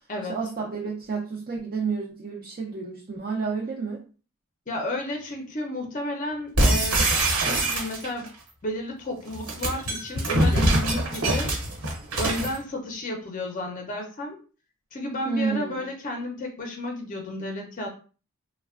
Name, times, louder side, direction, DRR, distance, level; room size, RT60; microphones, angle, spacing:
voice 1, 0.3-4.0 15.3-15.8, right 5 dB, 40° right, -2 dB, 0.4 m, -30 dB
voice 2, 4.7-7.1 7.4-8.3 8.6-11.5 12.2-14.4 14.9-17.9, left 1 dB, 35° left, 3 dB, 0.5 m, -32 dB
sound 1, 6.6-8.3 9.3-12.6, right 1 dB, 70° right, 1.1 m, -23 dB
3.2 x 2.1 x 2.4 m, 0.36 s
head